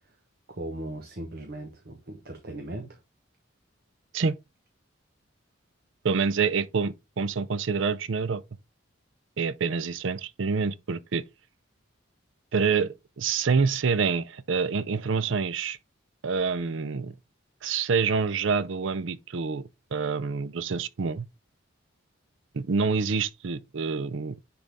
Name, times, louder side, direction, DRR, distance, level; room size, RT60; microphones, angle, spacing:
voice 1, 0.5-3.0, right 1 dB, 50° right, 1.1 m, -38 dB
voice 2, 6.0-8.4 9.4-11.2 12.5-15.8 16.2-17.1 17.6-21.2 22.5-24.4, right 5 dB, 65° right, 0.5 m, -27 dB
10.0 x 3.9 x 3.5 m
head